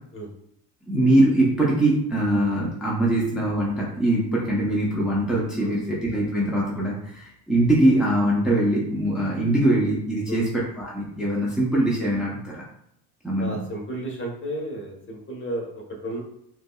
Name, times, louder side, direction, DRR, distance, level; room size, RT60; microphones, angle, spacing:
voice 1, 0.9-12.6 13.2-13.6, right 1 dB, ahead, -5 dB, 0.7 m, -22 dB
voice 2, 5.6-6.0 10.3-10.4 13.4-16.2, right 1 dB, 25° left, 0 dB, 1.2 m, -33 dB
5.0 x 2.0 x 2.3 m, 0.76 s
supercardioid pair, 85°, 44 cm